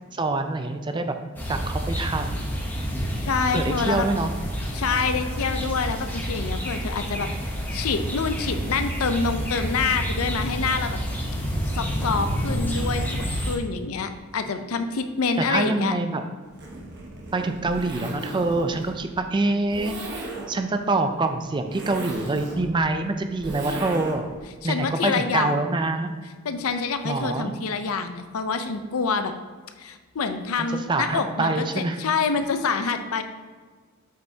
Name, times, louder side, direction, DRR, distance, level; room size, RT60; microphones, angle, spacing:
voice 1, 0.1-1.2 1.5-2.4 3.5-4.3 15.4-16.2 17.3-19.9 20.5-24.3 24.6-26.1 27.0-27.5 30.9-32.0, right 2 dB, 20° right, 7 dB, 0.4 m, -25 dB
sound 1, 1.4-13.6, equal, 10° left, 0.9 m, -29 dB
voice 2, 3.2-4.1 4.7-11.0 11.7-15.9 24.6-25.5 26.4-29.3 29.8-33.2, left 5 dB, 75° left, 8 dB, 0.5 m, -27 dB
Zipper (clothing), 16.5-24.4, right 2 dB, 55° right, 1.2 m, -37 dB
7.6 x 5.4 x 2.8 m, 1.4 s
head